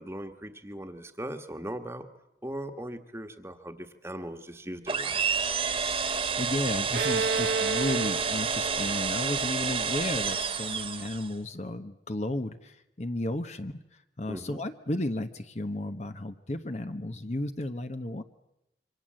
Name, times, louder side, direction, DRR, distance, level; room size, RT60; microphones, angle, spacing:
voice 1, 0.0-2.1 2.4-5.2 14.3-14.6, right 1 dB, 15° right, 7 dB, 1.5 m, -39 dB
sound 1, 4.9-11.4, right 5 dB, 30° right, 1.6 m, -29 dB
voice 2, 6.0-13.8 14.2-18.2, left 1 dB, 40° left, 9 dB, 1.0 m, -33 dB
Bowed string instrument, 6.9-10.5, right 4 dB, 70° right, 0.9 m, -32 dB
26.5 x 24.5 x 7.6 m, 0.88 s
head